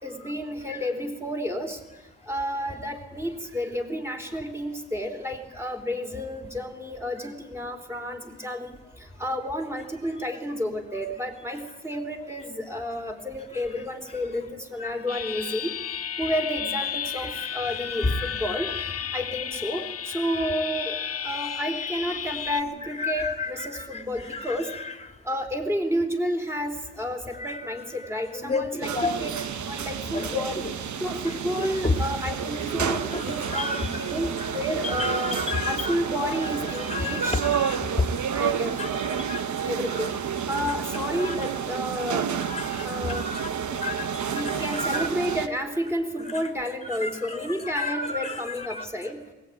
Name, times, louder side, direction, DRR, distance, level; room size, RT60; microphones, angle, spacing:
voice 1, 0.0-1.8 2.2-15.8 16.2-21.0 21.2-24.7 25.2-29.3 29.7-30.6 31.0-33.0 33.3-35.4 35.7-37.3 38.3-38.8 39.6-40.1 40.5-42.3 42.8-43.3 44.3-49.2, equal, 10° right, 4 dB, 3.6 m, -31 dB
sound 1, 15.1-22.6, left 8 dB, 50° left, 0.8 m, -33 dB
voice 2, 17.1-18.5 19.0-19.1 21.5-21.6 22.1-22.2 22.8-25.0 27.2-29.4 30.1-30.7 31.2-32.0 32.7-34.5 34.8-36.0 36.3-38.2 38.8-39.4 39.9-40.1 40.6-40.8 41.2-41.4 42.0-42.1 42.4-45.3 46.3-46.4 46.9-48.9, left 3 dB, 20° left, 6 dB, 2.3 m, -32 dB
sound 2, 28.8-45.5, right 8 dB, 70° right, 1.1 m, -30 dB
21.0 x 18.5 x 9.1 m, 1.1 s
cardioid pair, 85°, 30 cm